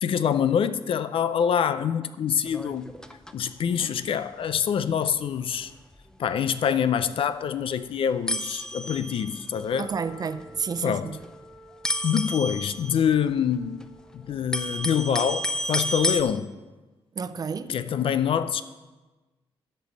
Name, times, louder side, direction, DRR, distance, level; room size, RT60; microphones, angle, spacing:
voice 1, 0.0-2.9 3.3-5.7 6.2-9.9 10.8-11.1 12.0-13.8 14.1-16.5 17.7-18.6, left 8 dB, 65° left, 13 dB, 0.5 m, -25 dB
sound 1, 2.5-3.4 3.7-4.0 4.5-4.7 5.1-5.2 5.6-5.7 5.9-6.1 7.0-7.1 7.7-7.8 8.3-9.6 10.4-10.9 11.1-11.4 11.8-13.8 14.2-16.2, left 1 dB, 5° left, 0.6 m, -31 dB
Wind instrument woodwind instrument, 9.8-14.9, equal, 45° left, 2.1 m, -51 dB
voice 2, 9.8-11.2 17.2-17.7, right 5 dB, 40° right, 13 dB, 0.5 m, -31 dB
11.5 x 5.4 x 7.2 m, 1.2 s
cardioid pair, 115°, 10 cm